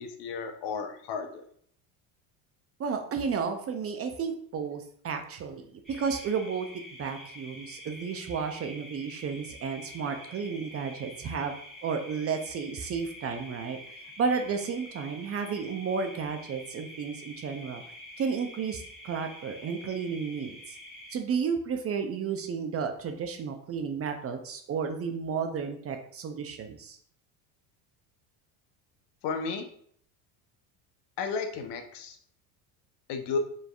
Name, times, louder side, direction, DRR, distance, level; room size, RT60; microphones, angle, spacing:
voice 1, 0.0-1.4 29.2-29.7 31.2-32.2 33.1-33.4, left 5 dB, 60° left, 6 dB, 0.8 m, -33 dB
voice 2, 2.8-6.7 7.0-11.5 11.8-17.8 18.2-20.8 21.1-27.0, right 6 dB, 30° right, 6 dB, 0.5 m, -32 dB
sound 1, 5.8-21.1, left 1 dB, ahead, 1.3 m, -47 dB
5.0 x 3.2 x 2.4 m, 0.62 s
supercardioid pair, 95°, 47 cm